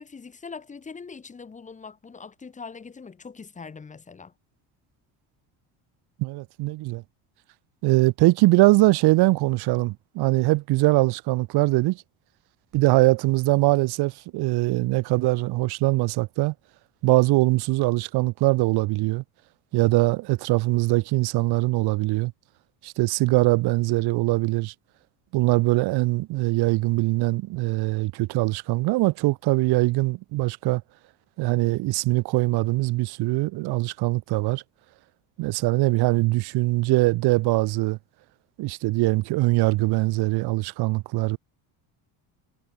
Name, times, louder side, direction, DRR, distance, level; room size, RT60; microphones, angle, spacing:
voice 1, 0.0-4.3, left 5 dB, 15° left, 1.4 m, -42 dB
voice 2, 6.2-7.0 7.8-12.0 12.7-16.5 17.0-19.2 19.7-22.3 22.8-24.7 25.3-30.8 31.4-34.6 35.4-38.0 38.6-41.4, right 20 dB, 60° right, 0.9 m, -22 dB
cardioid pair, 155°, 43 cm